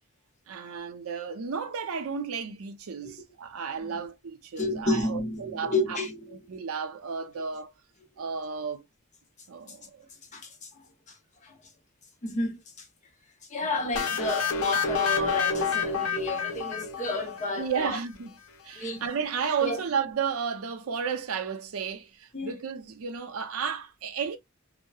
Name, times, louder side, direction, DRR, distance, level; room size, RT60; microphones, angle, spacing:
voice 1, 0.5-6.0 6.5-7.7 8.2-8.8 9.5-10.1 13.6-13.8 17.5-18.3 18.6-24.4, right 6 dB, 80° right, 0.5 m, -33 dB
voice 2, 4.6-6.4 10.3-11.6 12.2-12.9 13.5-18.0 18.7-19.0 19.6-19.8 22.3-22.5, left 2 dB, 35° left, 0.7 m, -31 dB
sound 1, 13.9-17.7, left 6 dB, 80° left, 0.6 m, -28 dB
2.8 x 2.0 x 2.2 m
head